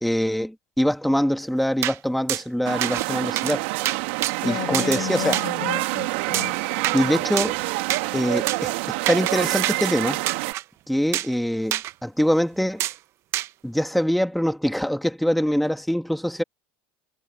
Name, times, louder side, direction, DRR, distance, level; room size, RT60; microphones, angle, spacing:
voice 1, 0.0-3.6 4.4-5.4 6.9-7.5 8.1-8.7 9.1-10.2 10.9-12.8 13.6-16.4, equal, ahead, 2.1 m, -23 dB
sound 1, 1.8-2.0 2.3-2.4 2.8-3.1 3.4-3.6 3.8-4.3 4.7-5.0 5.3-5.5 6.3-7.0 7.4-7.6 7.9-8.0 8.5-8.6 9.1-9.3 9.6-9.8 10.3-10.6 11.1-11.3 11.7-11.9 12.8-13.0 13.3-13.5, right 14 dB, 50° right, 1.0 m, -26 dB
sound 2, 2.6-10.5, right 23 dB, 80° right, 2.5 m, -27 dB
voice 2, 4.4-6.5, left 22 dB, 65° left, 6.7 m, -32 dB
supercardioid pair, 120°, 6 cm